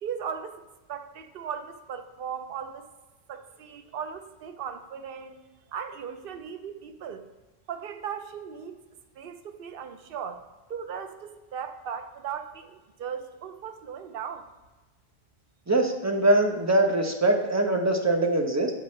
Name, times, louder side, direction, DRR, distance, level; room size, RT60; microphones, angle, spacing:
voice 1, 0.0-2.9 3.3-5.4 5.7-7.3 7.7-8.8 9.2-10.4 10.7-14.5, right 7 dB, 65° right, 8 dB, 0.8 m, -37 dB
voice 2, 15.7-18.7, right 1 dB, 20° right, 2 dB, 0.6 m, -23 dB
8.1 x 5.2 x 3.2 m, 1.1 s
omnidirectional pair, 1.1 m